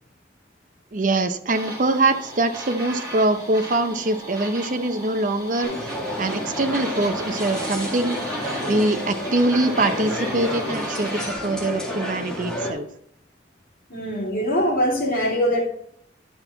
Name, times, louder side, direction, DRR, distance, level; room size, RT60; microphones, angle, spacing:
voice 1, 0.9-5.7 6.2-8.2 8.7-12.9, right 2 dB, 45° right, 9 dB, 0.7 m, -23 dB
sound 1, 1.5-11.3, right 1 dB, 20° right, 2.4 m, -36 dB
sound 2, 5.6-12.7, left 1 dB, 5° left, 1.9 m, -30 dB
voice 2, 13.9-15.6, equal, 55° left, -3 dB, 3.0 m, -22 dB
10.5 x 5.9 x 3.9 m, 0.68 s
head